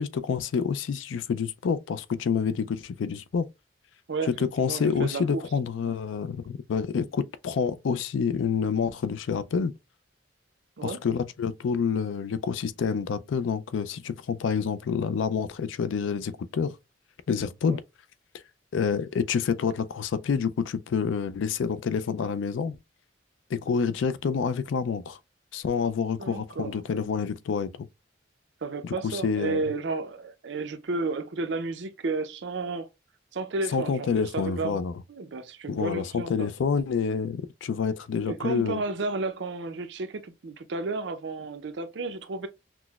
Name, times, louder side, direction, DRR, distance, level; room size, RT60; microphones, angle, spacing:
voice 1, 0.0-3.5 4.2-9.7 10.8-16.7 17.3-17.8 18.7-22.8 23.5-25.2 25.5-27.9 28.8-29.6 33.7-34.9 35.7-38.8, left 6 dB, 85° left, 0.4 m, -28 dB
voice 2, 4.7-5.4 10.8-11.0 17.7-17.8 26.2-26.8 28.6-32.9 33.3-34.8 35.1-36.5 38.3-42.5, right 3 dB, 65° right, 0.5 m, -32 dB
5.9 x 2.0 x 2.3 m
head